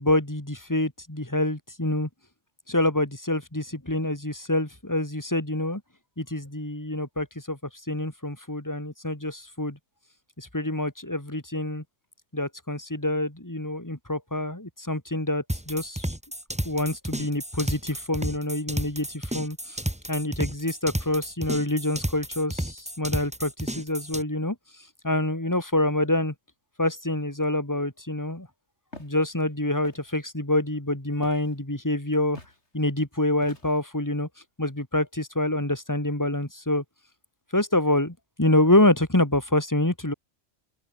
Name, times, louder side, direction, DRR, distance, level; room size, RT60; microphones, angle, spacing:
voice 1, 0.0-2.1 2.7-5.8 6.2-7.6 7.9-9.8 10.4-11.8 12.3-16.1 16.6-19.8 20.1-24.5 25.0-26.3 26.8-28.5 29.0-32.4 32.7-34.3 34.6-36.8 37.5-40.1, left 1 dB, 15° left, 3.3 m, -26 dB
sound 1, 15.5-24.2, right 1 dB, 5° right, 1.8 m, -32 dB
Walk footsteps, 28.9-29.2 29.8-30.2 31.2-31.6 32.3-32.6 33.4-33.9, left 2 dB, 65° left, 5.7 m, -46 dB
open air
omnidirectional pair, 1.2 m